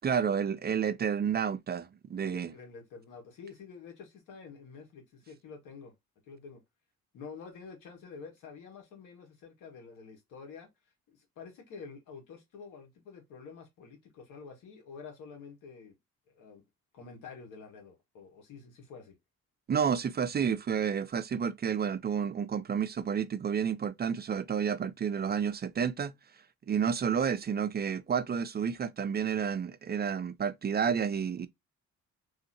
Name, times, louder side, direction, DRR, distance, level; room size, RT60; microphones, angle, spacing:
voice 1, 0.0-2.5 19.7-26.1 26.7-31.5, right 7 dB, 35° right, 0.4 m, -30 dB
voice 2, 2.2-5.9 6.2-6.6 7.1-10.7 11.1-16.0 16.3-16.6 16.9-19.2, left 5 dB, 85° left, 1.7 m, -48 dB
3.5 x 2.8 x 2.7 m
cardioid pair, 90°, 30 cm